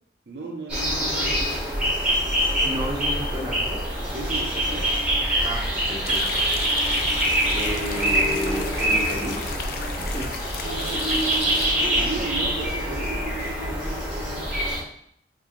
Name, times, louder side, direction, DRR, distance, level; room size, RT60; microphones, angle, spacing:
voice 1, 0.3-1.6 4.1-5.1 10.6-13.6, right 3 dB, 65° right, 1 dB, 0.5 m, -35 dB
sound 1, 0.7-14.8, right 1 dB, 5° right, 1.1 m, -25 dB
voice 2, 2.6-3.8 5.4-6.2 7.4-10.3, equal, 25° right, -2 dB, 0.6 m, -32 dB
sound 2, 6.0-11.7, left 5 dB, 55° left, 0.3 m, -36 dB
2.9 x 2.5 x 3.6 m, 0.67 s
head